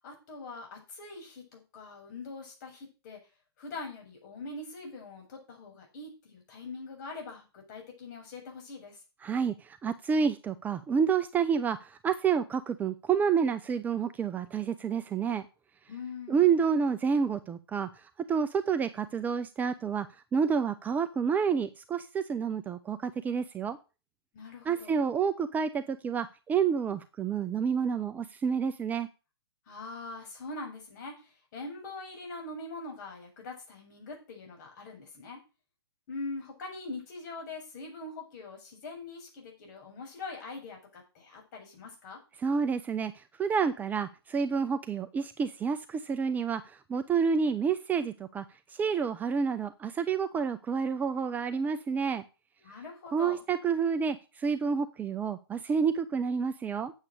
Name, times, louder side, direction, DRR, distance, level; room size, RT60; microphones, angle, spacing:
voice 1, 0.0-3.2 3.6-9.0 15.9-16.6 24.3-25.0 29.7-35.4 36.1-42.2 52.6-53.4, left 3 dB, 45° left, 1 dB, 7.9 m, -43 dB
voice 2, 9.2-15.4 16.3-20.1 20.3-23.8 24.7-29.1 42.4-52.2 53.1-56.9, right 6 dB, 10° right, 10 dB, 0.6 m, -29 dB
9.8 x 8.1 x 6.7 m, 0.31 s
hypercardioid pair, 135°, 14 cm